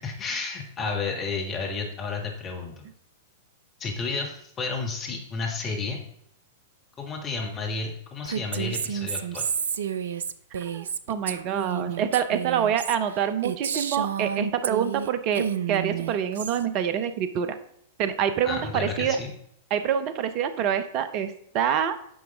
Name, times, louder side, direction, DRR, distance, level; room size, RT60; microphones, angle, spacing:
voice 1, 0.0-2.8 3.8-6.0 7.0-9.4 18.5-19.3, left 4 dB, 25° left, 1 dB, 1.8 m, -31 dB
Female speech woman speaking, 8.2-15.1 15.3-16.6, right 8 dB, 65° right, 0.4 m, -30 dB
voice 2, 10.5-17.6 18.0-19.2 19.7-22.0, right 8 dB, 40° right, 11 dB, 0.7 m, -26 dB
9.3 x 6.0 x 3.6 m, 0.71 s
figure-of-eight pair, 95°, 0 cm